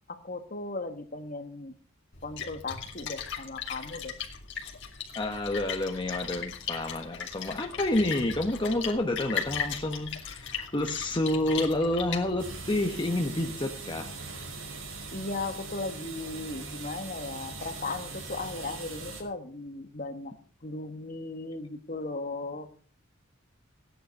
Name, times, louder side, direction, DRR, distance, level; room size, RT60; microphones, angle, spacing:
voice 1, 0.1-1.7 2.2-4.1 15.1-20.3 20.6-22.7, left 3 dB, 45° left, 8 dB, 1.6 m, -37 dB
Splash splatter, 2.1-12.7, left 7 dB, 60° left, 2.6 m, -38 dB
voice 2, 5.1-14.1 14.5-14.6, left 1 dB, 25° left, 3 dB, 1.1 m, -29 dB
sound 1, 12.4-19.2, right 3 dB, 70° right, 5.0 m, -41 dB
16.5 x 10.5 x 5.4 m, 0.42 s
head